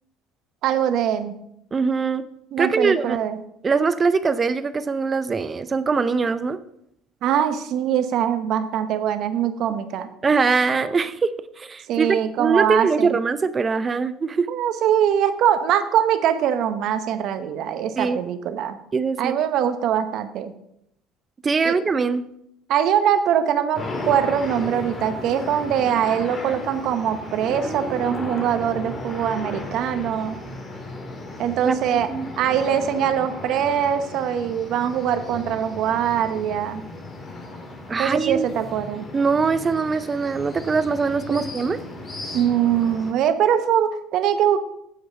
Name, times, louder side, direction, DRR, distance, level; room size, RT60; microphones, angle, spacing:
voice 1, 0.6-1.3 2.5-3.4 7.2-10.1 11.9-13.2 14.5-18.8 19.2-20.5 21.6-21.7 22.7-30.4 31.4-32.1 32.4-36.8 38.0-39.1 41.3-41.4 42.3-44.6, right 9 dB, 65° right, 10 dB, 0.9 m, -22 dB
voice 2, 1.7-2.2 2.6-3.2 3.6-6.6 10.2-12.1 12.4-14.5 18.0-18.2 18.9-19.3 21.4-22.3 31.7-31.8 32.1-32.3 37.9-38.5 39.1-41.8, right 4 dB, 30° right, 14 dB, 0.5 m, -22 dB
sound 1, 23.7-43.1, left 2 dB, 30° left, 2.0 m, -35 dB
8.6 x 4.8 x 6.9 m, 0.76 s
supercardioid pair, 90°, 0 cm